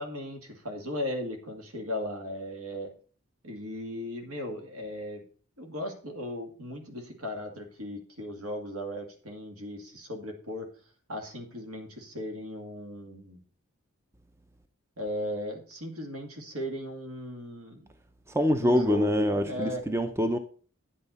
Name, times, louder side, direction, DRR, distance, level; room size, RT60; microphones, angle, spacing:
voice 1, 0.0-2.9 3.4-5.2 5.6-10.7 11.1-13.4 15.0-17.9 18.6-19.8, left 1 dB, 75° right, 2.1 m, -37 dB
voice 2, 18.3-20.4, equal, 10° right, 0.5 m, -25 dB
9.8 x 7.7 x 4.1 m
head